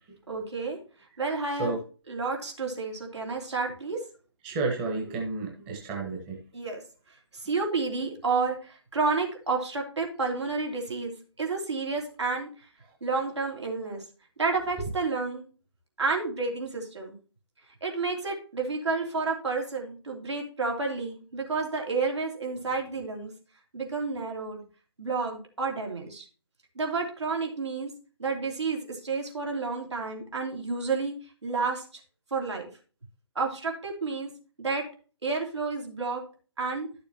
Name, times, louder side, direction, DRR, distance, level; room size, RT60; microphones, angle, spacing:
voice 1, 0.3-0.8 1.2-1.8 2.1-4.0 6.5-6.8 7.3-12.7 13.0-14.0 14.4-15.4 16.0-17.1 17.8-23.3 23.7-24.6 25.0-26.3 26.7-27.9 28.2-31.8 32.3-32.7 33.3-34.3 34.6-34.9 35.2-36.2 36.6-36.9, right 4 dB, 65° right, 0 dB, 3.2 m, -30 dB
voice 2, 4.4-6.4, right 3 dB, 20° right, 0 dB, 1.3 m, -31 dB
12.0 x 6.9 x 2.9 m, 0.36 s
figure-of-eight pair, 145°, 15 cm